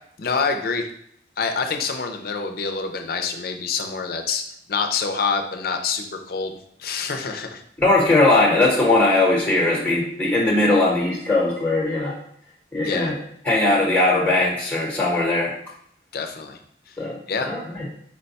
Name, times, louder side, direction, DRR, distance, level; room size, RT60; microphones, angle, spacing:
voice 1, 0.2-0.9 1.4-4.4 4.7-6.5 6.8-7.6 12.8-13.1 16.1-16.6 16.9-17.0 17.3-17.5, left 5 dB, 55° left, 5 dB, 0.4 m, -26 dB
voice 2, 7.8-12.2 12.7-13.2 13.4-15.5 17.0-17.2 17.5-17.9, left 2 dB, 10° left, -4 dB, 0.8 m, -19 dB
4.4 x 2.2 x 4.0 m, 0.67 s
head